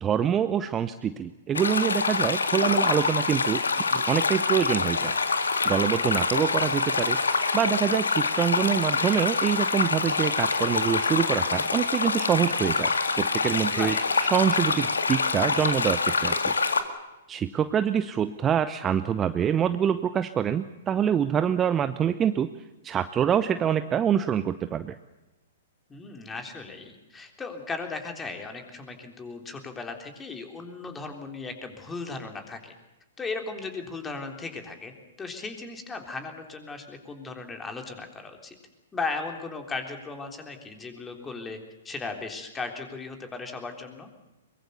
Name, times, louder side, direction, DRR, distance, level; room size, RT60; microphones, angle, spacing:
voice 1, 0.0-3.6 3.9-5.1 5.7-7.2 7.5-13.9 14.3-16.5 17.3-22.5 22.8-25.0, right 8 dB, 20° right, 11 dB, 0.8 m, -25 dB
sound 1, 1.5-16.8, left 4 dB, 75° left, 2.0 m, -26 dB
voice 2, 13.7-14.0 25.9-32.7 33.2-34.9 35.2-38.6 38.9-41.6 41.8-44.1, left 4 dB, 15° left, 5 dB, 3.6 m, -36 dB
23.5 x 22.5 x 7.0 m, 1.0 s
figure-of-eight pair, 115°, 0 cm